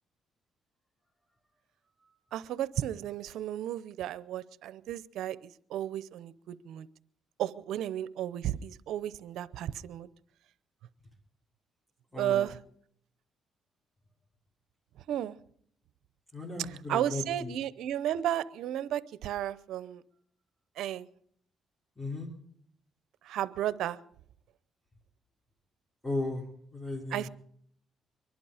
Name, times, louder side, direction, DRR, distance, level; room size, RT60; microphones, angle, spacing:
voice 1, 2.3-6.9 7.4-10.1 12.2-12.6 15.1-15.4 16.6-20.0 20.8-21.1 23.2-24.0 27.1-27.3, right 11 dB, 80° right, 0.7 m, -33 dB
voice 2, 12.1-12.4 16.3-17.6 22.0-22.3 26.0-27.3, left 2 dB, 15° left, 3.1 m, -36 dB
24.0 x 11.5 x 5.0 m
cardioid pair, 90°, 0 cm